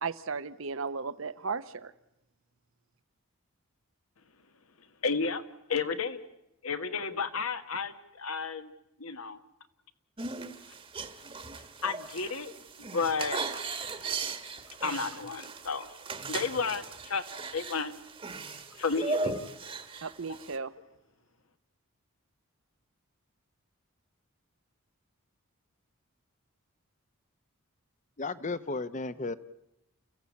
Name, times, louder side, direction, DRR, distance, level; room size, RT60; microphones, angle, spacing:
voice 1, 0.0-1.9 20.0-20.7, right 4 dB, 65° right, 13 dB, 0.8 m, -35 dB
voice 2, 5.0-5.4 5.7-6.2 6.6-8.7 9.0-9.4 11.8-12.5 12.8-13.5 14.8-15.9 16.3-17.2 17.5-17.9 18.8-19.3, left 4 dB, 75° left, 10 dB, 1.4 m, -32 dB
sound 1, 10.2-20.6, right 3 dB, 25° right, 1.3 m, -38 dB
voice 3, 28.2-29.3, left 3 dB, 35° left, 15 dB, 0.8 m, -34 dB
29.5 x 15.0 x 8.4 m, 0.87 s
head